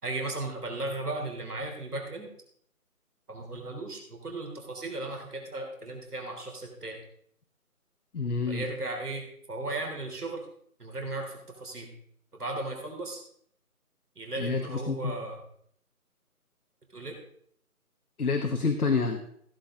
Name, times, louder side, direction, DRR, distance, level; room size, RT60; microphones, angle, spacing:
voice 1, 0.0-2.3 3.3-7.0 8.5-10.4 10.8-11.9 12.3-13.2 14.1-15.4 16.9-17.2, right 2 dB, 85° right, 1 dB, 3.5 m, -36 dB
voice 2, 8.1-8.6 14.4-15.1 18.2-19.2, left 4 dB, 75° left, 5 dB, 1.3 m, -28 dB
15.5 x 8.0 x 3.7 m, 0.65 s
figure-of-eight pair, 170°, 45 cm